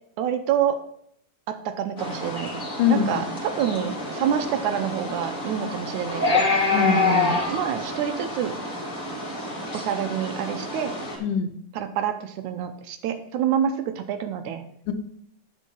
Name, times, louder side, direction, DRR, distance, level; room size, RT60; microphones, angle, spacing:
voice 1, 0.2-0.8 1.5-2.6 2.9-6.4 7.5-8.5 9.7-10.9 11.7-14.6, right 9 dB, 80° right, 8 dB, 2.0 m, -27 dB
sound 1, 2.0-11.2, left 2 dB, 25° left, 1.3 m, -27 dB
voice 2, 2.8-3.2 6.7-7.4 11.2-11.6 14.9-15.0, left 8 dB, 80° left, 7 dB, 2.4 m, -23 dB
8.2 x 5.5 x 5.5 m, 0.72 s
omnidirectional pair, 3.6 m